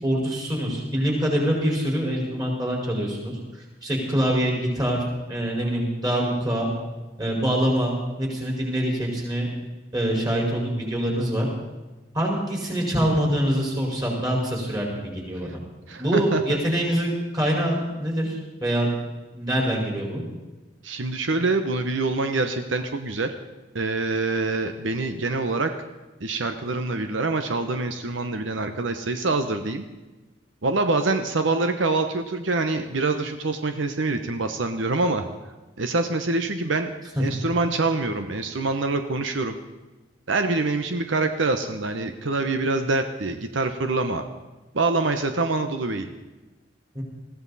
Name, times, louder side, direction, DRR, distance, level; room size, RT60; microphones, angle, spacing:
voice 1, 0.0-5.0 5.3-6.7 7.2-9.5 9.9-11.5 12.1-15.6 16.0-18.9 19.3-20.2 46.9-47.0, equal, 20° right, -2 dB, 4.7 m, -25 dB
voice 2, 15.9-16.6 20.8-23.3 23.7-25.7 26.2-29.8 30.6-35.2 35.8-36.9 37.2-39.6 40.3-44.2 44.7-46.1, right 3 dB, 85° right, 7 dB, 1.0 m, -25 dB
20.5 x 15.5 x 4.2 m, 1.1 s
head